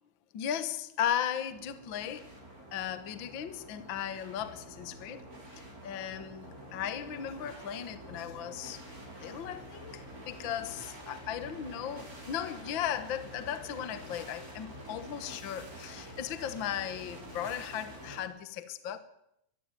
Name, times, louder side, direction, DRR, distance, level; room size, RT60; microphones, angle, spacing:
voice 1, 0.3-2.3 2.7-5.2 5.8-8.8 9.2-19.0, left 10 dB, 55° left, 12 dB, 1.3 m, -36 dB
sound 1, 1.5-18.2, equal, 25° right, 5.7 m, -47 dB
22.0 x 15.0 x 9.2 m, 0.78 s
omnidirectional pair, 4.0 m